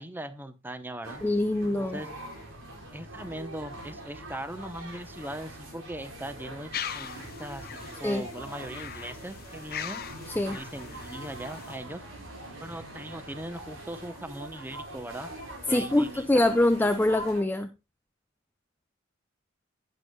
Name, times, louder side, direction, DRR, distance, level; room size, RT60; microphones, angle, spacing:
voice 1, 0.0-1.2 1.7-2.1 2.9-10.1 10.5-12.0 12.6-15.3 15.7-16.4, right 1 dB, 10° right, 0.8 m, -40 dB
sound 1, 1.0-17.4, right 1 dB, 85° right, 5.4 m, -43 dB
voice 2, 1.2-2.0 8.0-8.2 10.4-10.6 15.7-17.7, left 1 dB, 10° left, 0.4 m, -24 dB
sound 2, 6.7-11.8, left 8 dB, 50° left, 0.8 m, -40 dB
11.5 x 9.5 x 2.3 m
head